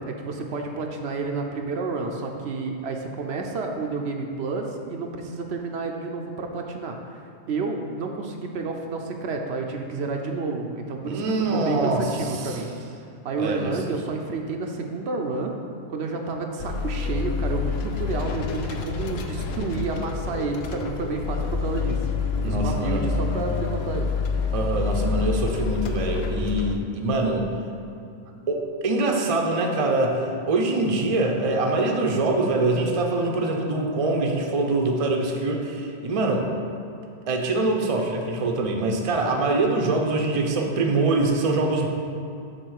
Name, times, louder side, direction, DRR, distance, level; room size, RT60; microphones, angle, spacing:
voice 1, 0.0-11.2 11.5-12.7 13.2-15.5 15.9-22.0 22.4-24.1, right 3 dB, 70° right, 2 dB, 0.9 m, -30 dB
voice 2, 11.0-12.6 13.4-13.7 22.4-23.0 24.5-27.4 28.5-36.5 37.3-41.9, right 2 dB, 35° right, 1 dB, 0.6 m, -24 dB
sound 1, 16.6-26.8, left 5 dB, 70° left, 0.8 m, -28 dB
6.7 x 3.9 x 6.4 m, 2.6 s
omnidirectional pair, 1.1 m